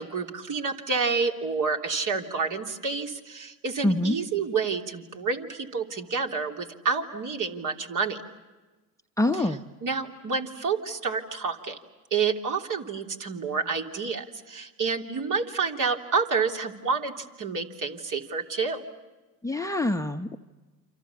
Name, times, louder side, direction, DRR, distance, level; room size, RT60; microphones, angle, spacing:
voice 1, 0.0-8.2 9.3-9.5 9.8-11.8 12.1-18.8, right 5 dB, 45° right, 3 dB, 3.2 m, -29 dB
voice 2, 3.8-4.2 9.2-9.6 19.4-20.4, left 1 dB, 5° left, 5 dB, 1.0 m, -25 dB
29.0 x 26.0 x 7.0 m, 1.2 s
supercardioid pair, 90°, 43 cm